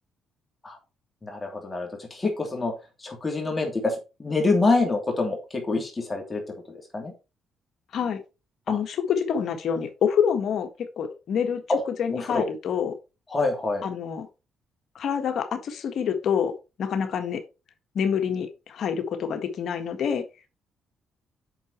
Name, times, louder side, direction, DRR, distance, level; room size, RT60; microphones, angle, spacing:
voice 1, 1.2-2.7 3.0-6.4 6.7-7.1 8.7-8.8 11.7-11.8 12.1-12.4 13.3-13.8, left 3 dB, 25° left, 2 dB, 2.7 m, -26 dB
voice 2, 8.7-10.7 11.0-12.9 13.8-14.3 14.9-16.5 16.8-17.4 17.9-20.2, left 7 dB, 65° left, 6 dB, 1.5 m, -27 dB
8.1 x 6.1 x 4.4 m, 0.29 s
cardioid pair, 90°, 0 cm